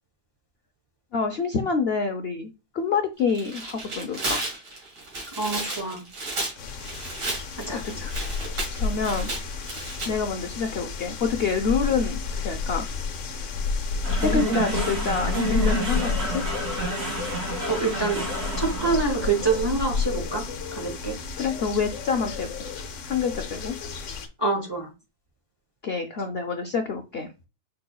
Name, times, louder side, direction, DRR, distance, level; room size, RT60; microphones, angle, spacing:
voice 1, 1.1-4.4 7.7-8.0 8.8-9.3 10.1-12.9 14.2-16.4 21.4-22.5 23.1-23.8 25.8-27.3, left 5 dB, 75° left, 0.5 m, -27 dB
Tearing, 3.2-10.1, right 2 dB, 80° right, 2.5 m, -33 dB
voice 2, 5.4-6.0 7.6-8.1 17.7-18.2 18.6-20.4 20.7-21.1 24.4-24.9, right 4 dB, 30° right, 0.4 m, -26 dB
sound 1, 6.6-24.3, left 5 dB, 55° left, 0.9 m, -31 dB
sound 2, 14.0-22.5, right 1 dB, 60° right, 2.6 m, -30 dB
5.4 x 4.2 x 2.3 m
omnidirectional pair, 1.8 m